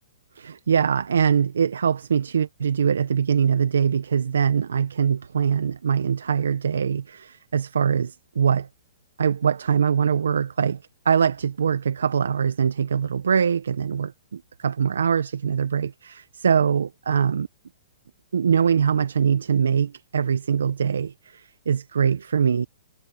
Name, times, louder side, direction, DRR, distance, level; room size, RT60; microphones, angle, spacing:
voice 1, 0.3-8.7 9.2-17.5 18.3-22.7, right 7 dB, 80° right, 1.1 m, -23 dB
hypercardioid pair, 130°, 0 cm